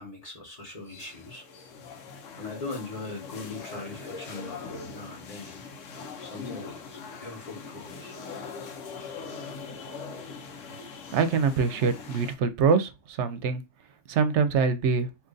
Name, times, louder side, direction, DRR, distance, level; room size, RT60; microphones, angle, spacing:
voice 1, 0.0-1.4 2.4-5.6 6.2-8.2, left 3 dB, 30° left, 1.2 m, -40 dB
sound 1, 0.9-12.3, left 5 dB, 85° left, 1.0 m, -41 dB
voice 2, 11.1-13.6 14.1-15.1, right 5 dB, 75° right, 0.9 m, -24 dB
2.8 x 2.5 x 3.7 m
omnidirectional pair, 1.2 m